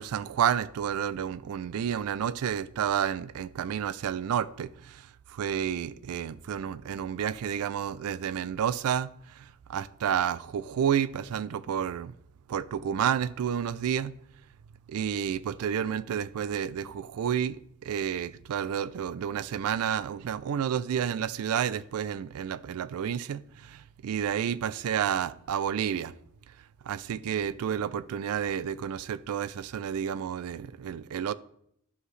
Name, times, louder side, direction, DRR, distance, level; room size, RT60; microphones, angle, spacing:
voice 1, 0.0-9.1 9.4-9.5 9.7-12.1 12.5-14.1 14.9-26.1 26.8-31.3, right 8 dB, 75° right, 0.3 m, -30 dB
11.0 x 4.8 x 3.2 m
head